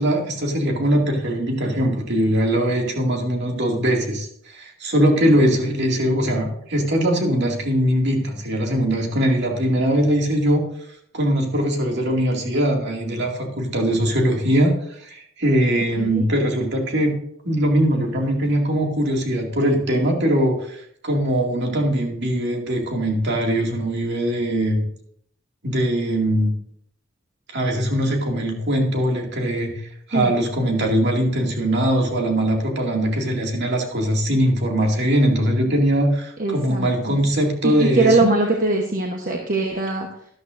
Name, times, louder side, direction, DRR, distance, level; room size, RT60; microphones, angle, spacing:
voice 1, 0.0-10.6 11.1-17.2 17.4-24.8 25.6-26.5 27.5-38.3, equal, 60° right, 1 dB, 2.3 m, -21 dB
voice 2, 36.4-37.2 37.6-40.1, right 3 dB, 45° right, 2 dB, 1.1 m, -21 dB
12.5 x 11.5 x 2.6 m, 0.67 s
head